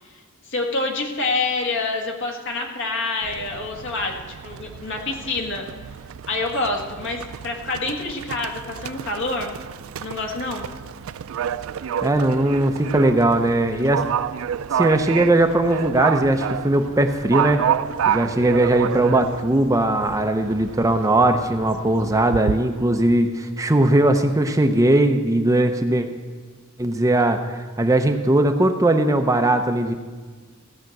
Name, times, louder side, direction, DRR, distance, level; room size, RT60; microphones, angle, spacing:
voice 1, 0.5-4.1 4.4-5.6 6.3-9.6 10.0-10.7, left 3 dB, 60° left, 1 dB, 1.8 m, -27 dB
Livestock farm animals working animals, 3.2-22.6, right 8 dB, 70° right, 0.4 m, -30 dB
voice 2, 12.0-14.0 14.7-17.6 18.1-26.1 26.8-29.9, right 1 dB, 15° right, 6 dB, 0.6 m, -19 dB
16.5 x 5.8 x 7.7 m, 1.4 s
head